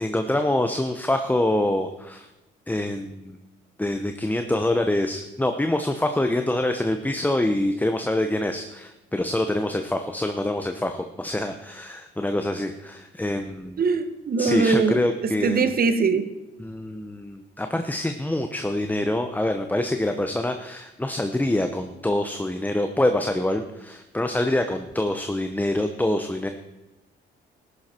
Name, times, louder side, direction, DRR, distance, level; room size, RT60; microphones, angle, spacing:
voice 1, 0.0-2.3 2.7-3.4 3.8-13.8 14.4-15.7 16.6-26.5, left 1 dB, 10° left, 6 dB, 0.9 m, -25 dB
voice 2, 13.8-16.3, right 4 dB, 50° right, 10 dB, 1.3 m, -22 dB
14.0 x 11.0 x 4.5 m, 1.0 s
cardioid pair, 90°, 20 cm